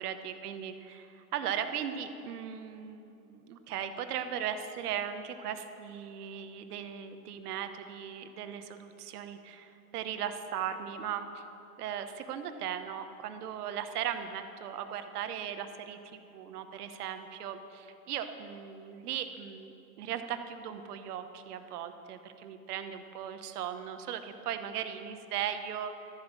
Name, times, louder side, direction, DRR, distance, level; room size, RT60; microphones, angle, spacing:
voice 1, 0.0-11.4 11.8-26.1, right 9 dB, 80° right, 8 dB, 1.2 m, -38 dB
13.0 x 9.1 x 7.2 m, 2.8 s
hypercardioid pair, 110°, 45 cm